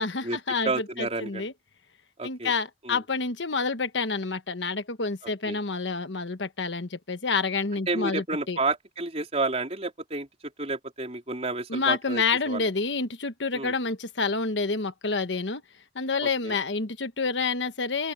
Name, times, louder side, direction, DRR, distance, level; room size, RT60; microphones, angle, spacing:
voice 1, 0.0-1.5 2.2-8.6 11.7-15.6 15.9-18.1, left 4 dB, 80° left, 1.3 m, -28 dB
voice 2, 0.6-1.5 2.2-2.5 2.8-3.0 5.4-5.6 7.9-10.3 10.6-12.6 13.5-13.7 16.2-16.6, right 3 dB, 35° right, 4.3 m, -30 dB
open air
head